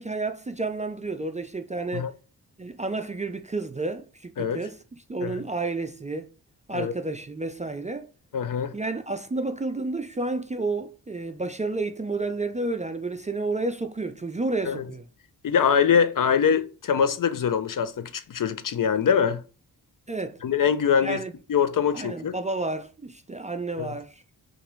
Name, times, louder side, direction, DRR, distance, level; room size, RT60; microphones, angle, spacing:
voice 1, 0.0-2.1 2.6-4.8 5.1-6.3 6.7-8.1 8.7-15.0 20.1-20.4 21.0-21.3 21.9-24.2, right 3 dB, 20° right, 0.4 m, -30 dB
voice 2, 8.3-8.7 14.7-14.8 15.4-19.4 20.4-21.2 21.5-22.4 23.8-23.9, left 7 dB, 55° left, 0.5 m, -23 dB
5.8 x 2.5 x 3.1 m
cardioid pair, 55°, 40 cm